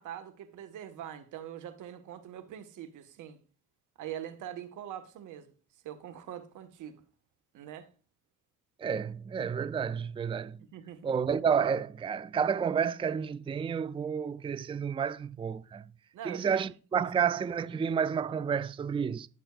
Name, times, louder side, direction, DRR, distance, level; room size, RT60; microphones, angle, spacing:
voice 1, 0.0-3.4 4.0-5.5 5.8-7.0 7.5-7.9 10.6-11.1 16.1-16.6 17.0-17.1, right 10 dB, 85° right, 1.2 m, -43 dB
voice 2, 8.8-10.7 11.0-15.8 16.3-19.3, right 7 dB, 20° right, 0.4 m, -30 dB
14.5 x 6.1 x 2.3 m
cardioid pair, 90°, 30 cm